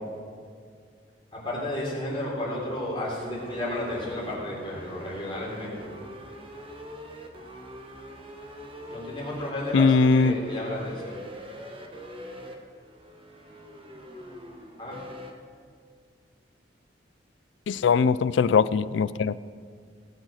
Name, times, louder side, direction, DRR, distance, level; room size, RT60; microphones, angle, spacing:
voice 1, 1.3-5.8 8.9-11.1 14.8-14.9, left 1 dB, 30° left, -5 dB, 3.7 m, -32 dB
sound 1, 3.2-15.3, equal, 30° right, 1.3 m, -43 dB
voice 2, 9.7-10.4 17.7-19.3, left 5 dB, 75° left, 17 dB, 0.4 m, -21 dB
17.5 x 6.4 x 6.4 m, 2.1 s
head